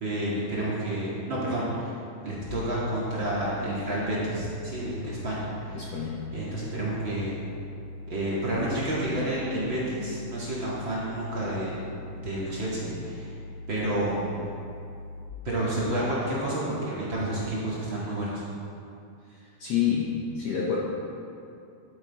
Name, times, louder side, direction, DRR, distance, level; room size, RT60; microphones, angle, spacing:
voice 1, 0.0-1.9 2.2-7.4 8.1-11.7 12.1-13.4 13.7-14.4 15.4-18.4, right 1 dB, 40° right, -7 dB, 2.2 m, -30 dB
sound 1, 2.5-15.3, left 2 dB, 85° left, 2.3 m, -41 dB
voice 2, 5.7-6.3 19.6-20.8, left 8 dB, 65° left, -4 dB, 1.8 m, -28 dB
11.5 x 9.5 x 4.1 m, 2.6 s
omnidirectional pair, 4.0 m